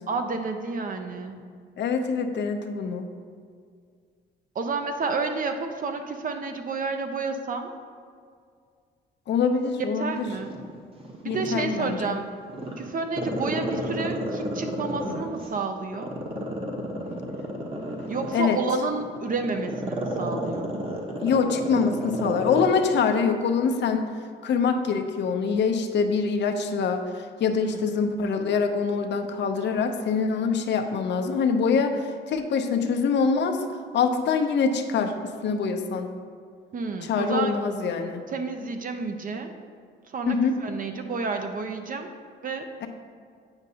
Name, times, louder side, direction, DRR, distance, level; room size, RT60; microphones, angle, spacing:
voice 1, 0.1-1.4 4.5-7.7 10.0-10.5 11.2-12.3 12.8-16.1 18.1-20.7 27.6-27.8 36.7-37.5 38.3-39.5 40.1-42.1 42.4-42.7, right 4 dB, 45° right, 6 dB, 0.6 m, -30 dB
voice 2, 1.8-3.0 9.3-10.2 11.2-12.1 18.3-18.6 21.2-24.1 24.4-33.6 33.9-36.1 37.0-38.2 40.3-40.5 42.8-42.9, left 5 dB, 65° left, 6 dB, 0.6 m, -24 dB
Growling, 10.3-12.1 12.5-15.5 15.9-22.8 23.1-23.2, right 1 dB, 30° right, 1.0 m, -31 dB
8.7 x 5.2 x 2.8 m, 2.1 s
cardioid pair, 90°, 20 cm